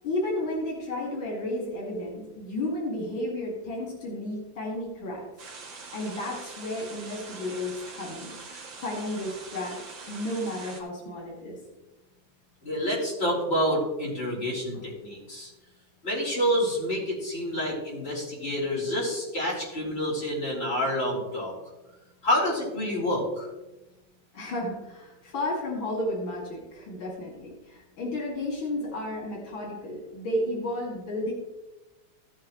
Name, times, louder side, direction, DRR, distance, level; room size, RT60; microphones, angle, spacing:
voice 1, 0.0-5.2 5.9-8.3 8.8-9.8 10.1-11.6 14.7-14.8 24.3-31.3, left 1 dB, 80° left, -3 dB, 3.1 m, -32 dB
sound 1, 5.4-10.8, right 4 dB, 75° right, 2.2 m, -43 dB
voice 2, 12.6-15.5 16.0-21.5 22.2-23.5, equal, 30° left, -8 dB, 4.2 m, -28 dB
14.5 x 7.6 x 3.1 m, 1.1 s
omnidirectional pair, 2.1 m